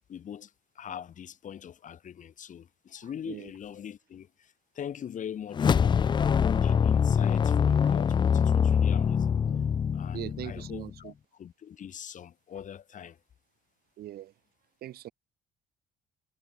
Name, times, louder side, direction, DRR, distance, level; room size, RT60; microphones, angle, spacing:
voice 1, 0.1-6.2 6.6-9.4 9.9-13.2, left 9 dB, 50° left, 3.0 m, -42 dB
sound 1, 5.5-10.9, left 7 dB, 25° left, 0.4 m, -24 dB
voice 2, 10.1-11.1 14.0-14.3 14.8-15.1, right 13 dB, 65° right, 2.2 m, -40 dB
cardioid pair, 110°, 17 cm